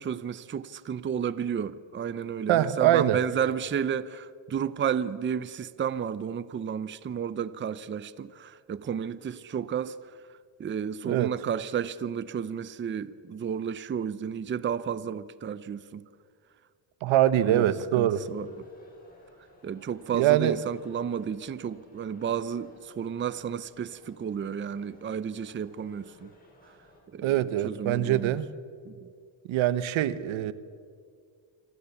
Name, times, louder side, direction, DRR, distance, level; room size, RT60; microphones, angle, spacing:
voice 1, 0.0-10.0 10.6-16.0 17.5-17.7 18.0-18.5 19.6-26.3 27.1-28.4 28.8-29.1, right 8 dB, 25° right, 0.6 m, -32 dB
voice 2, 2.5-3.2 11.0-11.3 17.0-18.2 20.1-20.6 27.2-28.5 29.5-30.5, right 12 dB, 85° right, 1.3 m, -23 dB
sound 1, 18.2-27.0, left 1 dB, 20° left, 6.8 m, -58 dB
26.5 x 26.0 x 7.1 m
cardioid pair, 145°, 46 cm